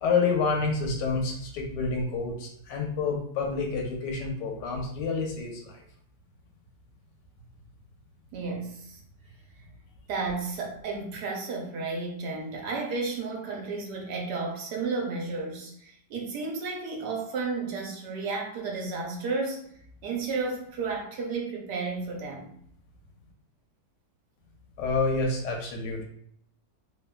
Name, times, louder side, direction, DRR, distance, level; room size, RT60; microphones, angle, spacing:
voice 1, 0.0-5.8 24.8-26.0, left 4 dB, 80° left, 1 dB, 1.3 m, -28 dB
voice 2, 8.3-9.0 10.1-19.7 20.0-22.5, right 4 dB, 75° right, 0 dB, 1.2 m, -32 dB
3.3 x 2.3 x 2.2 m, 0.67 s
omnidirectional pair, 1.9 m